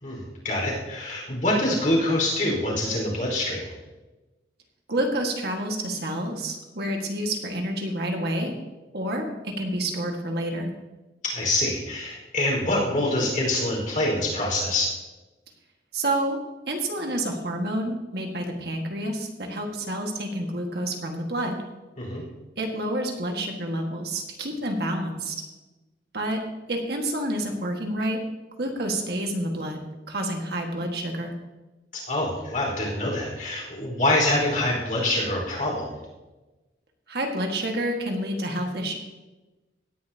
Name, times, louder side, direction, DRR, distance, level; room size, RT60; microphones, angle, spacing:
voice 1, 0.0-3.7 11.2-14.9 22.0-22.2 31.9-35.9, left 1 dB, 50° left, -2 dB, 4.7 m, -25 dB
voice 2, 4.9-8.5 8.9-10.7 15.9-16.4 16.7-21.6 22.6-25.3 26.1-26.4 26.7-28.2 28.6-29.8 30.1-31.3 37.1-39.0, right 1 dB, 65° right, 2 dB, 1.8 m, -28 dB
17.5 x 10.5 x 2.9 m, 1.1 s
head